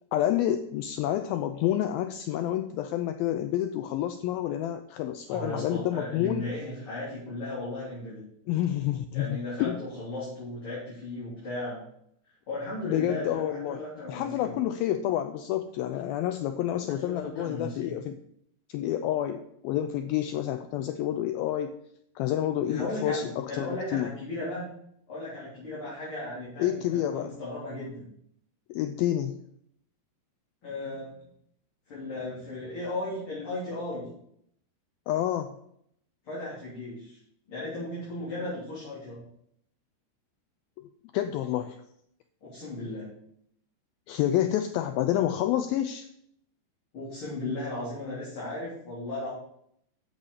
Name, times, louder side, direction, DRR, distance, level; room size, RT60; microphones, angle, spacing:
voice 1, 0.1-6.5 8.5-9.8 12.9-13.8 14.1-18.2 18.7-21.7 22.2-24.1 26.6-27.3 28.7-29.4 35.1-35.6 40.8-41.8 44.1-46.1, left 12 dB, 90° left, 8 dB, 2.1 m, -29 dB
voice 2, 5.3-8.2 9.1-11.8 12.5-14.6 16.9-17.9 22.6-24.7 25.1-28.1 30.6-31.3 31.9-34.0 36.2-37.2 37.5-39.2 42.4-43.1 46.9-49.3, left 2 dB, 30° left, -9 dB, 4.1 m, -36 dB
10.5 x 7.2 x 4.9 m, 0.70 s
omnidirectional pair, 4.8 m